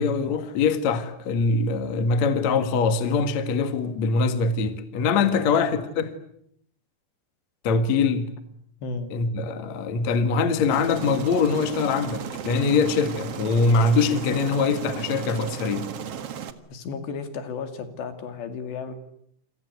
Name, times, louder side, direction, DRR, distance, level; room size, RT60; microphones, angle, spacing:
voice 1, 0.0-6.1 7.6-8.3 9.1-15.9, left 4 dB, 50° left, 2.4 m, -23 dB
voice 2, 5.4-5.7 8.8-9.1 16.7-18.9, left 5 dB, 70° left, 4.5 m, -34 dB
Aircraft, 10.7-16.5, right 8 dB, 75° right, 1.4 m, -35 dB
28.0 x 26.0 x 8.2 m
omnidirectional pair, 5.3 m